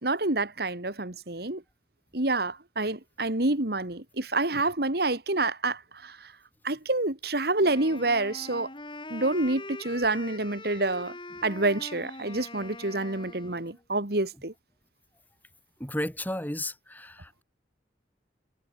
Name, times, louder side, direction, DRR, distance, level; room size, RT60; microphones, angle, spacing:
voice 1, 0.0-1.6 2.1-6.2 6.6-8.7 9.1-11.2 11.4-14.5, right 2 dB, 60° right, 2.6 m, -28 dB
Wind instrument woodwind instrument, 7.6-13.8, left 2 dB, 30° left, 7.7 m, -43 dB
voice 2, 15.8-17.4, left 1 dB, 10° left, 3.2 m, -33 dB
head